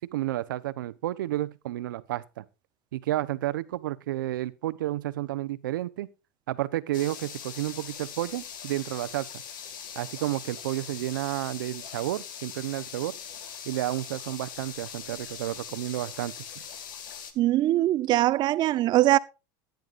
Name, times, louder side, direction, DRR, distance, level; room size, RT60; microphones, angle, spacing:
voice 1, 0.0-2.4 2.9-6.1 6.5-9.4 10.0-13.1 13.7-16.3, right 15 dB, 90° right, 0.9 m, -31 dB
sound 1, 6.9-17.3, left 8 dB, 85° left, 2.1 m, -41 dB
voice 2, 17.4-19.2, right 15 dB, 45° right, 0.8 m, -22 dB
16.5 x 10.5 x 2.5 m
supercardioid pair, 115°, 11 cm